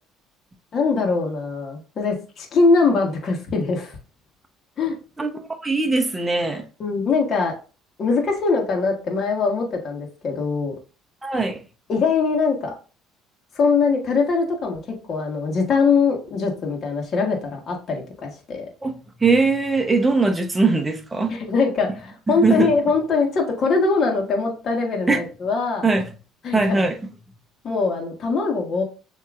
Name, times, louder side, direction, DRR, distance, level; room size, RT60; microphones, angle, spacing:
voice 1, 0.7-4.0 4.8-4.9 6.8-7.5 8.0-10.7 11.9-12.7 13.5-14.8 15.1-18.7 21.3-25.8 26.4-26.8 27.6-28.8, left 4 dB, 45° left, 1.3 m, -22 dB
voice 2, 5.2-6.6 11.2-11.6 18.8-18.9 19.2-21.3 22.3-22.7 25.1-25.2 25.8-26.0 26.5-27.0, right 3 dB, 15° right, 0.8 m, -20 dB
6.9 x 2.8 x 2.5 m
cardioid pair, 110°, 0 cm